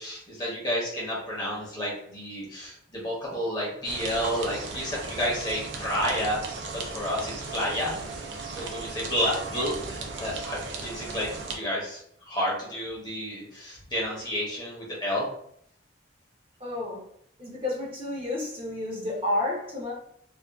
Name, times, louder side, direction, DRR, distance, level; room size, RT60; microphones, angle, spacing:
voice 1, 0.0-8.2 8.5-12.0 12.3-15.2, equal, 20° left, -5 dB, 0.8 m, -30 dB
sound 1, 3.8-11.6, right 3 dB, 75° right, 0.4 m, -36 dB
voice 2, 16.6-17.0 17.4-19.9, left 2 dB, 30° right, -4 dB, 0.7 m, -30 dB
2.5 x 2.3 x 2.3 m, 0.69 s
head